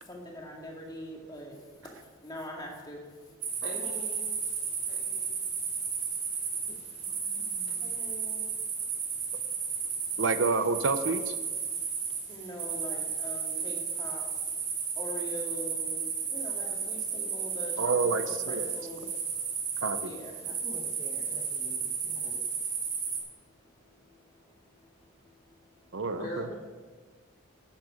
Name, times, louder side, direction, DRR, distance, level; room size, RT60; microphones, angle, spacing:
voice 1, 0.0-3.6 4.6-5.5 5.9-9.1 9.6-10.2 11.7-14.2 14.8-20.6 21.6-22.0 22.6-26.0, equal, 20° left, -1 dB, 2.2 m, -45 dB
sound 1, 3.4-23.2, right 6 dB, 40° right, 3.7 m, -33 dB
voice 2, 3.6-4.3 4.9-5.4 7.7-8.1 26.0-26.6, equal, 40° left, -2 dB, 2.9 m, -42 dB
voice 3, 7.1-7.9 20.5-22.5 26.1-26.6, left 1 dB, 15° right, 0 dB, 1.0 m, -48 dB
voice 4, 10.2-11.3 17.8-18.6 19.8-20.1 25.9-26.5, right 4 dB, 60° right, 10 dB, 0.6 m, -28 dB
12.0 x 9.4 x 5.1 m, 1.5 s
head